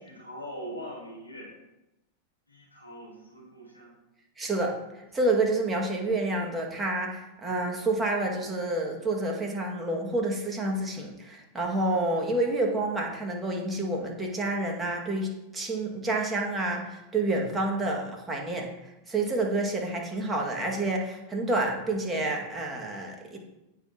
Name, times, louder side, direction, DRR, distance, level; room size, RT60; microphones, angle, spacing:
voice 1, 0.0-1.6 2.5-3.9, equal, 90° left, -8 dB, 3.6 m, -42 dB
voice 2, 4.4-4.7 5.1-18.7 19.1-23.4, right 2 dB, 15° right, -1 dB, 2.2 m, -29 dB
17.0 x 6.1 x 3.0 m, 0.95 s
figure-of-eight pair, 90°, 0 cm